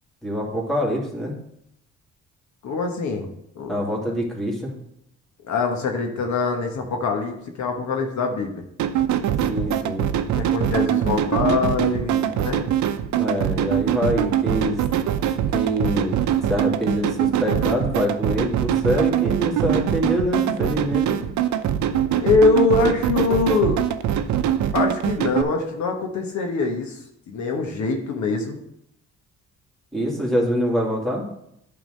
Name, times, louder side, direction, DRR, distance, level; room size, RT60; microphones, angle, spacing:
voice 1, 0.2-1.4 3.7-4.7 9.5-10.1 13.2-14.8 15.5-16.2 16.5-21.2 29.9-31.2, equal, ahead, -2 dB, 2.5 m, -25 dB
voice 2, 2.6-3.3 3.5-3.7 5.4-8.6 10.3-12.7 22.1-23.8 24.7-27.0 27.3-28.6, left 4 dB, 70° left, 3 dB, 1.3 m, -23 dB
sound 1, 8.8-25.4, right 10 dB, 70° right, 0.6 m, -23 dB
9.1 x 3.8 x 6.4 m, 0.77 s
cardioid pair, 90°, 30 cm